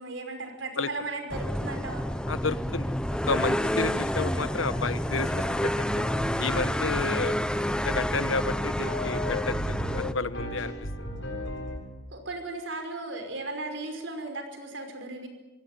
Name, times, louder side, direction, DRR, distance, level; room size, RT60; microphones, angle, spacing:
voice 1, 0.0-2.1 12.1-15.3, right 2 dB, 65° right, 6 dB, 5.4 m, -36 dB
sound 1, 1.3-10.1, equal, 5° left, 0.7 m, -29 dB
voice 2, 2.3-2.9 3.3-6.0 6.4-7.4 7.8-10.7, left 4 dB, 85° left, 13 dB, 1.2 m, -31 dB
sound 2, 4.4-11.8, left 1 dB, 65° left, 7.7 m, -38 dB
26.0 x 17.0 x 9.7 m, 1.1 s
head